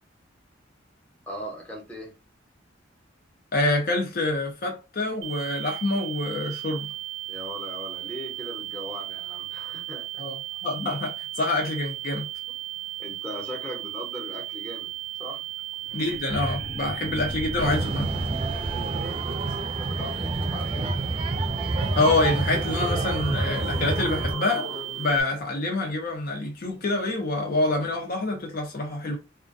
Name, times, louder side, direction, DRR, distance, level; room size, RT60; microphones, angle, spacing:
voice 1, 1.3-2.1 7.3-10.2 13.0-14.9 15.2-15.5 18.9-19.3 19.8-21.0, equal, 5° left, 0.8 m, -39 dB
voice 2, 3.5-6.9 10.2-12.3 15.9-18.1 22.0-24.7 25.0-29.2, left 2 dB, 50° left, 0.5 m, -26 dB
sound 1, 5.2-25.2, right 15 dB, 90° right, 0.3 m, -36 dB
sound 2, 15.6-15.7 15.8-19.0 21.5-21.6 22.2-25.3 27.9-28.0, right 1 dB, 80° left, 1.0 m, -36 dB
sound 3, 17.6-24.3, right 2 dB, 30° right, 0.5 m, -29 dB
2.3 x 2.1 x 2.5 m
head